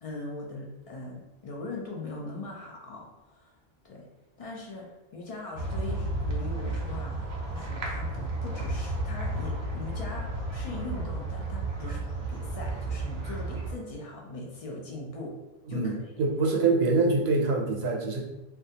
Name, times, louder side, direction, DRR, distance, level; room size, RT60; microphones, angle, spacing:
voice 1, 0.0-3.6 3.8-4.1 4.4-4.9 5.1-15.4 15.7-16.1, left 2 dB, 50° left, -2 dB, 0.5 m, -40 dB
sound 1, 5.5-13.7, right 2 dB, 50° right, 0.5 m, -32 dB
voice 2, 15.7-18.2, right 3 dB, 85° right, 1 dB, 0.8 m, -25 dB
2.3 x 2.2 x 2.7 m, 0.99 s
omnidirectional pair, 1.0 m